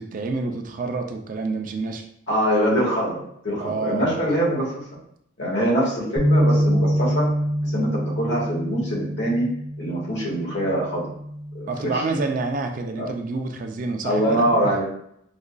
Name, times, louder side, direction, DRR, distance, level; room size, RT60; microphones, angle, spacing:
voice 1, 0.0-2.1 3.5-4.1 11.7-14.7, right 3 dB, 45° right, 4 dB, 0.4 m, -28 dB
voice 2, 2.3-4.7 5.4-7.3 7.6-9.5 9.8-11.1 11.5-12.2 12.9-13.1 14.0-14.8, right 1 dB, 65° left, -5 dB, 1.4 m, -24 dB
sound 1, 6.2-12.4, equal, 30° left, 1.2 m, -25 dB
4.9 x 2.4 x 2.2 m, 0.72 s
head